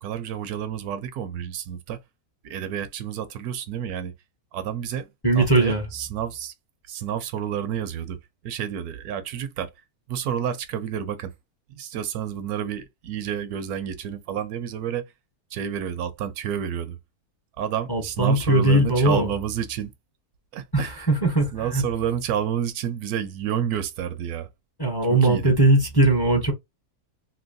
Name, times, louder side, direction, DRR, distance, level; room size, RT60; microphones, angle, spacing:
voice 1, 0.0-2.0 2.4-4.1 4.5-5.1 5.3-6.5 6.9-9.7 10.1-11.3 11.7-15.1 15.5-17.0 17.6-19.9 20.5-21.1 21.5-24.5 25.1-25.5, right 9 dB, 80° right, 1.1 m, -30 dB
voice 2, 5.2-5.9 17.9-19.3 20.7-21.8 24.8-26.5, right 2 dB, 20° left, 0.7 m, -20 dB
3.0 x 2.8 x 2.6 m
omnidirectional pair, 1.6 m